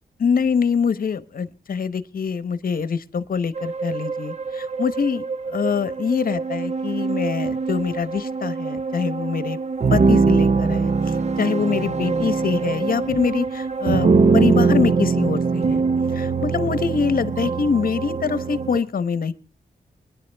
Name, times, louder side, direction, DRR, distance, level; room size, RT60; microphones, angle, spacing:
voice 1, 0.2-9.6 9.9-15.8 16.1-19.3, left 6 dB, 60° left, 16 dB, 1.0 m, -24 dB
sound 1, 3.6-18.8, right 4 dB, 45° right, 0.7 m, -22 dB
24.0 x 10.5 x 3.4 m, 0.38 s
wide cardioid pair, 110°, 16 cm